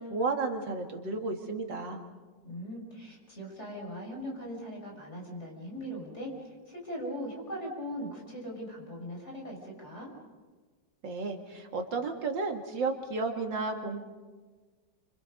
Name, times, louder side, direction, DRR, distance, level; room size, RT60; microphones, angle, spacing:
voice 1, 0.0-2.0 11.0-14.0, right 3 dB, 85° right, 3 dB, 2.8 m, -33 dB
voice 2, 2.4-10.1, equal, 40° left, -1 dB, 6.8 m, -40 dB
30.0 x 26.0 x 5.3 m, 1.4 s
omnidirectional pair, 1.9 m